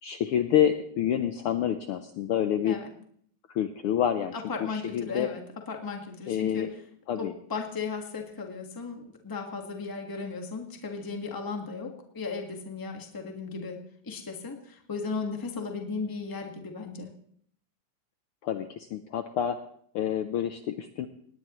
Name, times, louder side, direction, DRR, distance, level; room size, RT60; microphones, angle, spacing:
voice 1, 0.0-2.8 3.5-4.3 4.7-5.3 6.3-6.7 7.1-7.3 18.4-19.6 19.9-21.1, left 9 dB, 85° left, 8 dB, 1.2 m, -27 dB
voice 2, 4.3-5.4 5.7-6.7 7.2-13.8 14.0-17.1, left 4 dB, 15° left, 3 dB, 0.8 m, -36 dB
18.5 x 18.5 x 3.1 m, 0.65 s
omnidirectional pair, 3.3 m